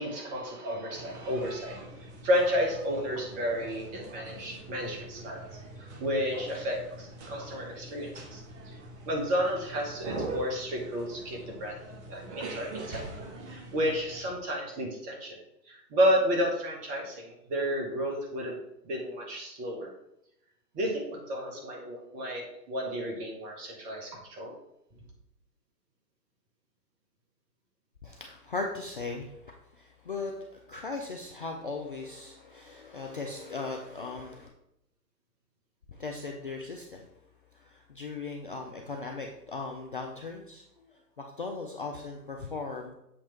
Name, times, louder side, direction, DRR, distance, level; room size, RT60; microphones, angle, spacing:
voice 1, 0.0-1.8 2.2-5.5 5.8-8.8 9.1-11.8 12.1-13.0 13.5-15.4 15.7-18.5 18.8-19.9 20.7-24.5, equal, 15° right, 0 dB, 0.7 m, -31 dB
sound 1, 0.9-14.3, right 2 dB, 45° right, 1.2 m, -43 dB
voice 2, 28.0-29.3 29.7-34.5 35.9-37.1 37.5-40.9 41.2-42.9, left 3 dB, 35° left, 0 dB, 0.4 m, -38 dB
7.3 x 2.9 x 4.4 m, 0.79 s
figure-of-eight pair, 120°, 50 cm